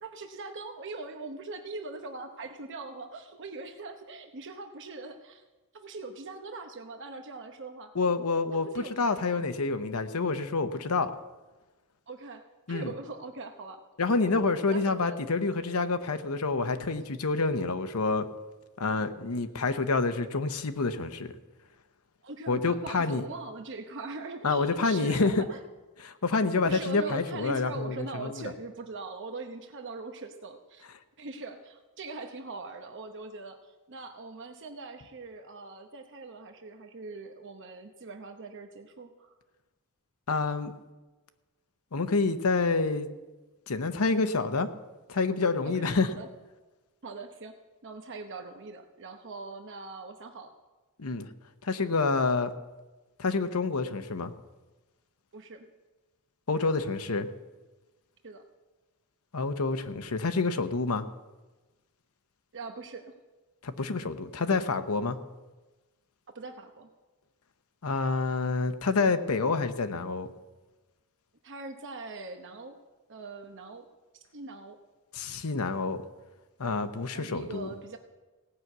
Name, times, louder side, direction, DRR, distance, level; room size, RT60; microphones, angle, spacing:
voice 1, 0.0-5.4 5.7-7.9 8.5-9.2 12.1-12.4 12.7-13.8 14.2-14.3 14.7-15.2 22.2-25.6 26.6-30.9 31.2-39.3 45.6-46.3 47.0-47.5 47.8-50.5 55.3-55.7 58.2-58.4 62.5-63.1 66.3-66.9 71.4-72.8 73.1-73.8 74.1-74.8 77.1-78.0, right 3 dB, 55° right, 5 dB, 0.9 m, -41 dB
voice 2, 7.9-11.1 12.7-12.9 14.0-18.3 18.8-21.3 22.5-23.2 24.4-25.4 26.0-28.3 40.3-40.7 41.9-43.1 43.7-44.7 45.1-46.1 51.0-51.3 51.6-52.5 53.2-54.3 56.5-57.3 59.3-61.0 63.6-65.2 67.8-70.3 75.1-76.0 76.6-77.7, left 3 dB, 75° left, 10 dB, 0.8 m, -28 dB
17.0 x 6.1 x 8.0 m, 1.2 s
head